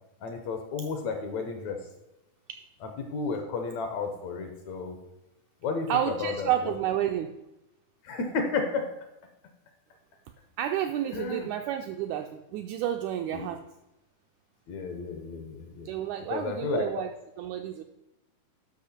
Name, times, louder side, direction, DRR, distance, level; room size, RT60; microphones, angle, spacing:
voice 1, 0.2-1.8 2.8-5.0 5.6-6.7 8.0-8.8 11.1-11.5 13.3-13.5 14.7-15.9 16.3-16.8, left 4 dB, 70° left, 5 dB, 1.9 m, -32 dB
voice 2, 5.9-7.3 10.6-13.6 15.8-17.1 17.4-17.8, right 11 dB, 85° right, 5 dB, 1.7 m, -30 dB
12.5 x 5.4 x 4.3 m, 0.93 s
omnidirectional pair, 3.9 m